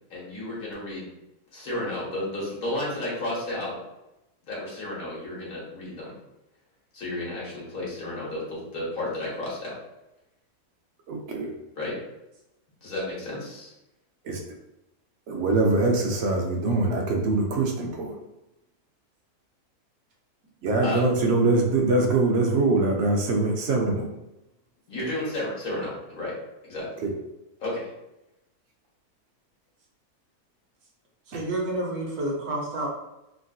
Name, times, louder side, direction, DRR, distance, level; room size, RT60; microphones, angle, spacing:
voice 1, 0.1-1.1 1.5-3.8 4.4-6.1 6.9-9.8 11.8-12.0 12.8-13.7 20.8-21.0 24.9-26.4 26.6-27.0 27.6-27.9, left 1 dB, 65° left, -5 dB, 1.5 m, -32 dB
voice 2, 11.1-11.5 14.2-14.4 15.3-18.2 20.6-24.1 27.0-27.1 31.3-31.4, right 2 dB, 65° right, 1 dB, 0.7 m, -23 dB
voice 3, 31.3-32.9, right 1 dB, 80° right, -2 dB, 1.3 m, -29 dB
3.6 x 2.5 x 2.3 m, 0.91 s
omnidirectional pair, 1.6 m